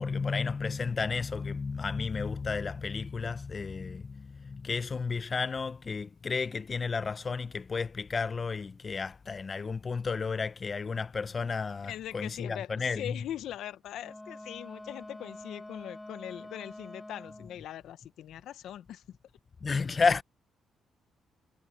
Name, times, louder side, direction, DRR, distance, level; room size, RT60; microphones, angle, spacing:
voice 1, 0.0-13.2 19.6-20.2, left 4 dB, 35° left, 0.7 m, -32 dB
voice 2, 11.9-19.2, left 11 dB, 75° left, 0.7 m, -41 dB
Wind instrument woodwind instrument, 14.0-17.6, left 1 dB, 10° left, 4.2 m, -46 dB
cardioid pair, 90°, 0 cm